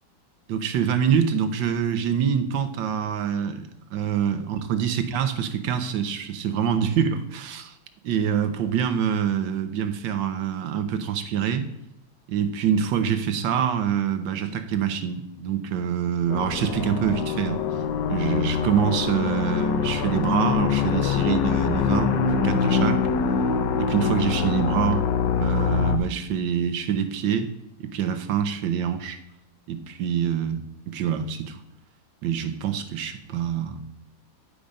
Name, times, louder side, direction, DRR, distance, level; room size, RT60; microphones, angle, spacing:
voice 1, 0.5-7.7 8.0-11.7 12.3-17.6 18.1-23.1 23.8-25.0 25.4-27.5 27.8-29.2 29.7-30.6 30.9-31.6 32.2-33.8, right 8 dB, 75° right, 9 dB, 1.5 m, -25 dB
sound 1, 16.3-26.0, left 6 dB, 70° left, 1.4 m, -24 dB
10.5 x 5.0 x 5.2 m, 0.79 s
omnidirectional pair, 2.1 m